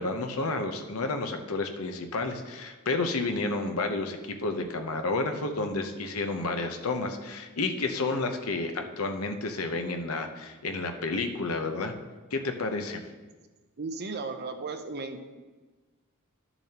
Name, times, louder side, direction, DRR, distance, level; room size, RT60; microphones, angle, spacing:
voice 1, 0.0-11.9 12.3-13.1, left 3 dB, 75° left, 5 dB, 0.8 m, -31 dB
voice 2, 13.8-15.2, right 3 dB, 50° right, 7 dB, 0.7 m, -35 dB
12.0 x 6.9 x 2.9 m, 1.3 s
head